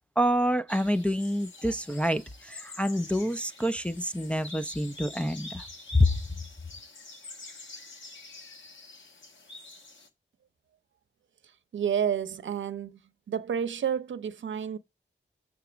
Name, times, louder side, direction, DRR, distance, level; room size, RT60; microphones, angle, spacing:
voice 1, 0.2-5.6 5.9-6.1, equal, 5° left, 0.3 m, -27 dB
sound 1, 0.7-10.1, left 2 dB, 75° left, 1.4 m, -46 dB
voice 2, 11.7-13.0 13.3-14.8, right 8 dB, 80° right, 0.7 m, -30 dB
6.9 x 3.8 x 5.9 m
wide cardioid pair, 140°, 20 cm